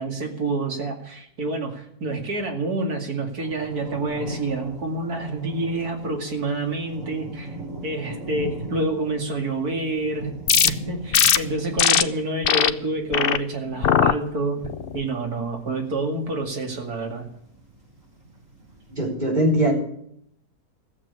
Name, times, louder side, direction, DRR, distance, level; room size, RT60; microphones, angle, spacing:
voice 1, 0.0-7.6 7.8-10.3 10.6-14.6 14.9-17.3, right 2 dB, 70° right, 2 dB, 2.9 m, -28 dB
sound 1, 3.4-19.1, right 1 dB, 55° right, 6.1 m, -40 dB
sound 2, 10.5-10.7 11.1-11.4 11.8-12.0 12.4-12.7 13.1-13.4 13.8-14.1 14.6-15.0, left 8 dB, 55° left, 0.6 m, -18 dB
voice 2, 18.9-19.7, right 1 dB, 25° right, -2 dB, 4.4 m, -21 dB
15.0 x 7.6 x 9.9 m, 0.70 s
omnidirectional pair, 1.7 m